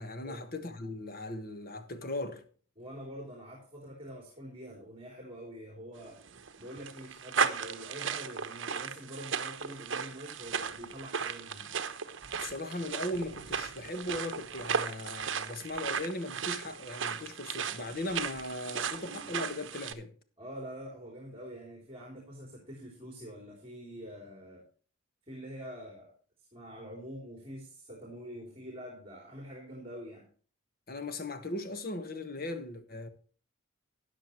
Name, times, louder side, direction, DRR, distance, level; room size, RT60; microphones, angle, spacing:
voice 1, 0.0-2.4 12.4-20.1 30.9-33.1, left 1 dB, 45° left, 1.4 m, -38 dB
voice 2, 2.8-6.2 6.6-11.7 20.4-24.6 25.3-26.1 26.5-30.3, equal, 30° right, 3.4 m, -45 dB
sound 1, 6.1-19.9, right 6 dB, 65° right, 0.9 m, -36 dB
13.0 x 10.0 x 3.1 m
head